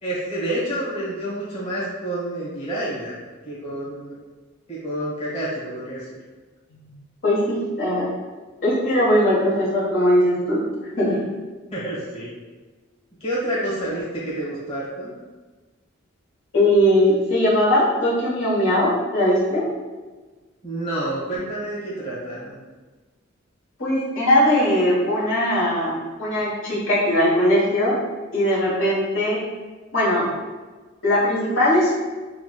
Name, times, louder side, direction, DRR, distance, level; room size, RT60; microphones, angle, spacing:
voice 1, 0.0-4.2 4.7-6.1 11.7-12.3 13.2-15.1 20.6-22.6, right 1 dB, 30° left, -8 dB, 1.2 m, -29 dB
voice 2, 7.2-8.1 8.6-10.6 11.0-11.2 16.5-19.6 23.8-28.0 28.3-29.4 29.9-30.2 31.0-31.9, left 1 dB, 70° left, -7 dB, 1.4 m, -20 dB
5.8 x 2.3 x 2.3 m, 1.3 s
head